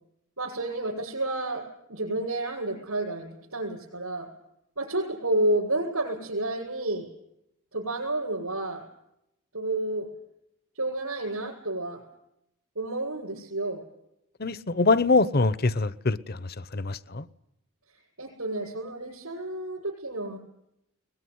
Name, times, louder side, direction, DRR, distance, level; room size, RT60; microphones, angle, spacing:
voice 1, 0.4-4.3 4.8-7.1 7.7-8.8 9.5-10.1 10.7-12.0 12.8-13.8 17.9-20.4, right 2 dB, 80° right, -3 dB, 7.5 m, -30 dB
voice 2, 14.4-17.3, left 3 dB, 45° left, 16 dB, 0.9 m, -24 dB
22.0 x 21.0 x 9.6 m, 0.81 s
head